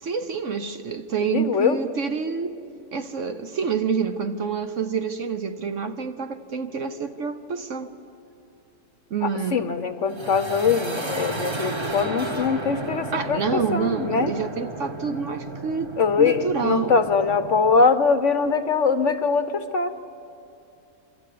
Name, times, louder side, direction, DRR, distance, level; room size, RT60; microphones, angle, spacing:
voice 1, 0.0-2.6 2.9-7.9 9.1-9.7 13.1-16.9, right 5 dB, 55° right, 9 dB, 1.1 m, -27 dB
voice 2, 1.3-1.8 9.2-14.3 16.0-19.9, left 5 dB, 55° left, 10 dB, 1.1 m, -22 dB
sound 1, 10.1-17.8, right 2 dB, 20° right, 0.9 m, -33 dB
27.0 x 26.0 x 8.5 m, 2.7 s
omnidirectional pair, 1.8 m